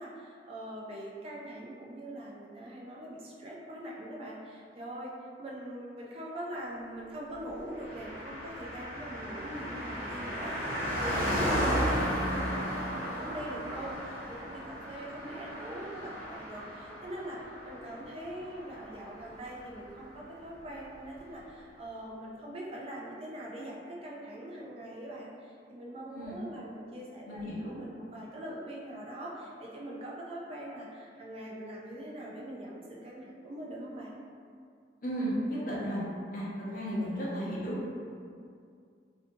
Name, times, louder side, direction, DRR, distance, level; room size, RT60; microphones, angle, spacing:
voice 1, 0.0-5.1 5.4-27.4 27.8-34.1 37.3-37.4, right 1 dB, 35° right, -4 dB, 0.3 m, -42 dB
Car passing by, 7.7-19.6 19.8-19.9, equal, 55° right, 0.8 m, -34 dB
voice 2, 26.1-26.4 27.2-27.7 35.0-36.0 36.3-37.9, equal, 50° left, -7 dB, 0.7 m, -34 dB
2.5 x 2.3 x 2.7 m, 2.3 s
head